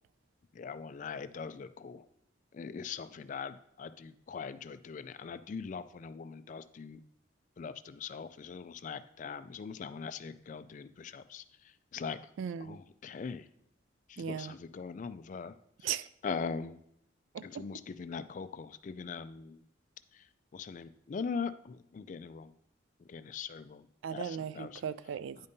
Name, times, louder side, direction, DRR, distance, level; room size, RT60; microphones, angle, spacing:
voice 1, 0.6-2.0 2.5-7.0 7.6-11.4 11.9-12.2 12.7-13.4 14.1-15.5 16.2-16.8 17.4-19.6 20.5-22.5 23.1-23.8 24.1-24.2 24.6-24.7, left 5 dB, 40° left, 0.3 m, -41 dB
voice 2, 12.4-12.8 14.2-14.6 15.8-16.1 17.3-17.6 24.0-25.4, right 8 dB, 80° right, 0.3 m, -37 dB
9.5 x 5.2 x 2.7 m
head